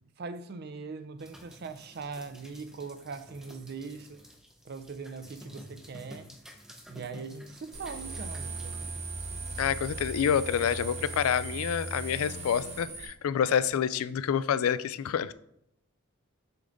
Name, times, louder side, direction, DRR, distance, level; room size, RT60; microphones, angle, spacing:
voice 1, 0.2-4.2 4.6-6.3 6.9-8.8, right 4 dB, 50° right, 12 dB, 0.4 m, -41 dB
sound 1, 1.2-11.2, equal, ahead, 0.6 m, -51 dB
sound 2, 7.7-13.1, right 3 dB, 30° right, 1.1 m, -38 dB
voice 2, 9.6-15.3, left 8 dB, 85° left, 15 dB, 0.3 m, -28 dB
6.7 x 3.6 x 3.9 m, 0.74 s
head